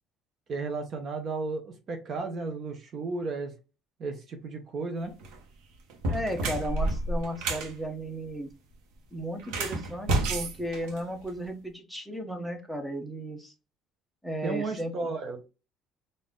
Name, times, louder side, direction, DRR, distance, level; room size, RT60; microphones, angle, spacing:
voice 1, 0.5-3.5 4.0-5.1 14.4-15.5, right 3 dB, 35° right, 5 dB, 0.7 m, -34 dB
sound 1, 5.1-5.4 5.9-7.7 9.4-11.5, right 2 dB, 75° right, 1.1 m, -30 dB
voice 2, 6.1-8.5 9.1-13.5 14.2-15.1, equal, ahead, 4 dB, 0.8 m, -35 dB
4.0 x 2.6 x 3.6 m, 0.29 s
cardioid pair, 165°, 0 cm